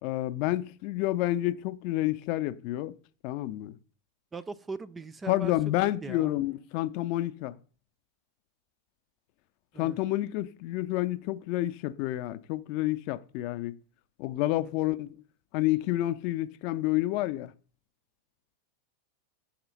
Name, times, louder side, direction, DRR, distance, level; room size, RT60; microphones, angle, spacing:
voice 1, 0.0-2.9 3.2-3.8 5.3-7.5 9.8-13.7 14.2-15.1 15.5-17.5, left 16 dB, 45° left, 0.5 m, -29 dB
voice 2, 4.3-6.3 9.7-10.0 14.6-14.9, right 4 dB, 15° right, 0.4 m, -40 dB
6.1 x 4.3 x 5.3 m
figure-of-eight pair, 90°, 0 cm